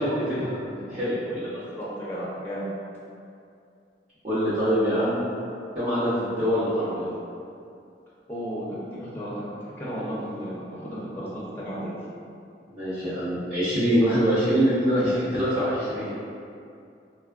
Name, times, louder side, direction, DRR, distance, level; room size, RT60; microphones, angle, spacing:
voice 1, 0.0-1.6 4.2-5.2 5.7-7.1 12.7-16.1, equal, 40° right, -17 dB, 0.9 m, -24 dB
voice 2, 1.6-2.7 8.3-9.5 9.8-11.3 11.6-11.9, equal, 10° left, -8 dB, 0.5 m, -33 dB
3.4 x 2.2 x 2.3 m, 2.5 s
head